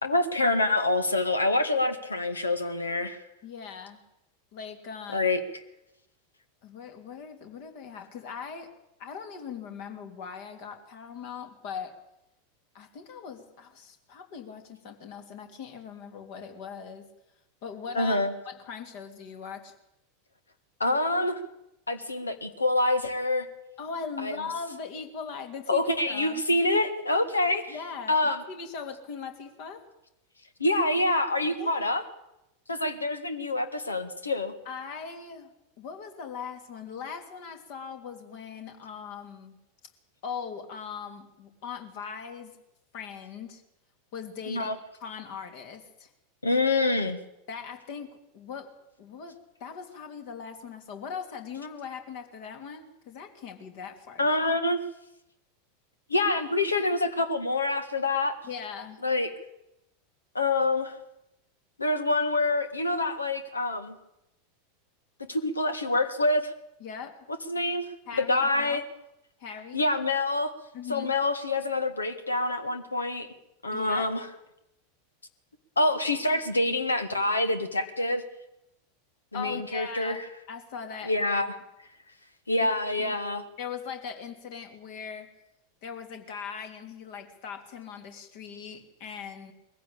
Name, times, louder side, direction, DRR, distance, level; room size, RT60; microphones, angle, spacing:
voice 1, 0.0-3.2 5.1-5.4 17.9-18.3 20.8-21.4 21.9-23.5 24.2-24.4 25.7-27.8 28.1-28.4 30.6-32.0 32.7-34.5 44.4-44.7 46.4-47.2 54.2-54.8 56.1-58.3 59.0-59.3 60.3-61.0 61.8-63.9 65.3-66.5 67.5-68.8 69.7-70.5 70.9-73.3 73.6-74.3 75.7-78.2 79.3-80.2 81.0-81.6 82.5-83.4, left 2 dB, 85° left, 10 dB, 1.8 m, -26 dB
voice 2, 3.4-4.0 4.5-5.3 6.6-8.7 9.0-12.0 12.7-17.1 17.6-19.7 23.8-26.4 27.7-29.8 31.6-31.9 34.6-35.5 35.8-39.6 40.2-42.6 42.9-43.6 44.1-44.7 45.0-46.1 47.5-48.1 48.3-48.7 49.0-54.4 58.4-59.0 66.8-67.3 68.1-68.8 69.4-69.8 70.7-71.1 73.7-74.1 79.3-81.4 82.6-82.7 83.0-83.2 83.6-85.3 85.8-89.5, left 6 dB, 55° left, 6 dB, 3.1 m, -40 dB
21.5 x 15.5 x 8.7 m, 0.88 s
figure-of-eight pair, 90°, 0 cm